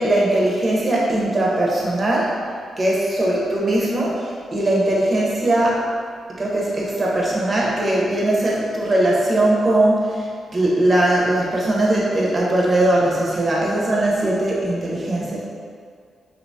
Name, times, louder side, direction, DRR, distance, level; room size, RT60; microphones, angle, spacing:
voice 1, 0.0-2.4 2.8-5.9 6.3-15.4, right 1 dB, 45° right, -5 dB, 0.7 m, -20 dB
2.8 x 2.2 x 2.6 m, 2.1 s
supercardioid pair, 50°, 0 cm